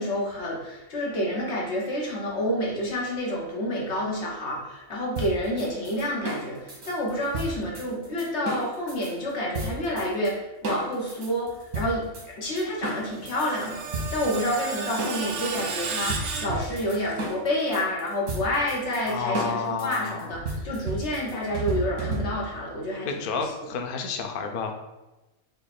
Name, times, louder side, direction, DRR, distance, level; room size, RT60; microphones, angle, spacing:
voice 1, 0.0-23.5, left 1 dB, 55° left, -3 dB, 1.4 m, -29 dB
sound 1, 5.2-9.1 9.5-10.3 10.6-13.5 13.9-22.6, right 2 dB, 85° right, 1.5 m, -33 dB
Screech, 12.9-17.2, right 4 dB, 60° right, 0.6 m, -34 dB
voice 2, 19.1-20.3 23.0-24.7, left 5 dB, 75° left, 4 dB, 0.5 m, -30 dB
5.1 x 2.4 x 4.2 m, 1.0 s
omnidirectional pair, 1.5 m